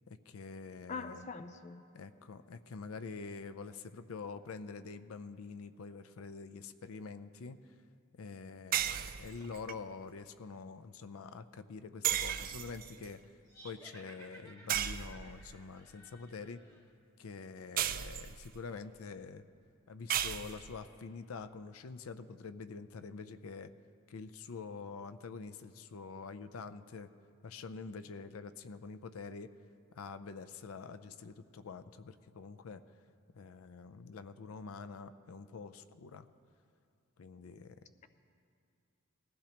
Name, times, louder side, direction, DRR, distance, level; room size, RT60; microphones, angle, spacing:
voice 1, 0.1-1.2 1.9-7.6 8.1-13.2 13.6-16.6 17.2-19.4 19.9-23.7 24.1-27.1 27.4-29.5 30.0-32.8 33.3-36.3 37.2-37.8, left 4 dB, 85° left, 12 dB, 0.5 m, -46 dB
voice 2, 0.9-1.8, left 4 dB, 35° left, 9 dB, 0.4 m, -42 dB
sound 1, 8.7-9.7 12.0-13.1 14.7-15.6 17.8-18.6 20.1-20.8, right 10 dB, 40° right, 0.4 m, -35 dB
sound 2, 13.5-16.9, right 1 dB, 15° left, 1.3 m, -56 dB
19.5 x 15.0 x 2.9 m, 2.3 s
head